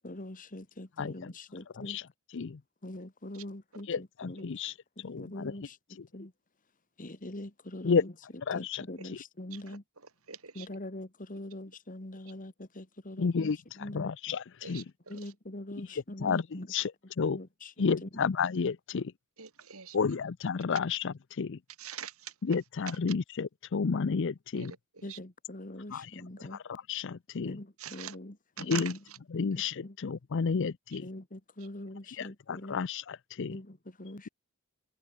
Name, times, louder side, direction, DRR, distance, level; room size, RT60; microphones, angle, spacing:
voice 1, 0.0-2.0 2.8-4.6 5.0-5.8 6.1-6.3 7.0-8.1 8.5-9.8 10.5-14.4 15.1-16.7 17.2-18.2 25.0-26.6 27.4-29.0 29.3-29.5 29.8-30.0 31.0-32.8 33.5-34.3, left 1 dB, 35° left, 2.0 m, -43 dB
voice 2, 1.0-1.3 1.8-2.0 2.3-2.6 3.9-4.7 5.0-5.5 7.8-8.0 8.5-8.8 13.2-13.6 13.9-14.8 16.2-16.4 16.7-16.9 17.2-17.4 17.8-19.1 19.9-21.6 22.4-24.7 25.9-26.1 26.7-27.6 28.6-28.9 29.3-31.1 32.2-33.6, left 5 dB, 60° left, 0.5 m, -31 dB
voice 3, 10.3-10.7 14.6-14.8 19.4-20.0 21.8-22.3 24.5-25.2 27.8-28.2 28.6-28.9 30.9-31.0, right 8 dB, 75° right, 3.4 m, -43 dB
head